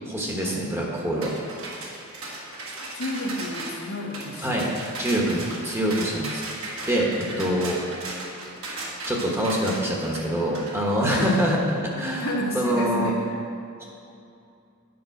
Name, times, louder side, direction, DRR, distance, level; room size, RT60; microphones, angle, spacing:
voice 1, 0.0-1.3 4.4-4.7 5.0-7.1 7.4-7.8 9.1-12.3 12.5-13.1 13.8-13.9, equal, 10° right, -2 dB, 1.2 m, -25 dB
sound 1, 1.2-11.6, right 2 dB, 65° right, 1.5 m, -36 dB
voice 2, 2.9-4.6 7.3-7.7 11.0-11.4 12.2-13.4, left 1 dB, 60° left, -2 dB, 1.4 m, -31 dB
9.5 x 5.3 x 5.9 m, 2.6 s
head